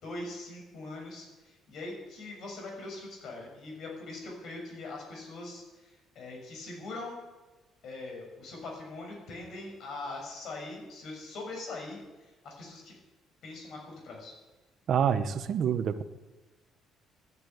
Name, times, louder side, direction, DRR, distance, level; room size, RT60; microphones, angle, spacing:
voice 1, 0.0-7.2 7.8-13.0 13.4-14.3, left 2 dB, 50° left, 0 dB, 6.6 m, -42 dB
voice 2, 14.9-16.0, right 8 dB, 45° right, 10 dB, 1.0 m, -27 dB
14.0 x 11.0 x 8.9 m, 1.2 s
cardioid pair, 165°, 0 cm